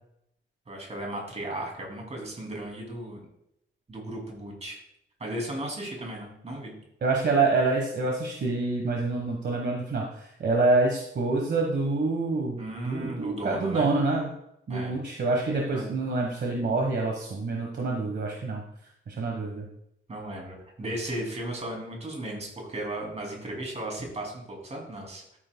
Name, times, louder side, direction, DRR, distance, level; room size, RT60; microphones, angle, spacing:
voice 1, 0.7-3.2 3.9-4.8 5.2-6.7 12.6-13.9 14.7-15.0 15.7-15.8 20.1-25.4, right 1 dB, 30° right, 0 dB, 2.7 m, -35 dB
voice 2, 7.0-14.3 14.7-18.6 19.1-19.7, right 3 dB, 55° right, 0 dB, 1.3 m, -26 dB
13.5 x 8.8 x 2.3 m, 0.76 s
wide cardioid pair, 170°, 21 cm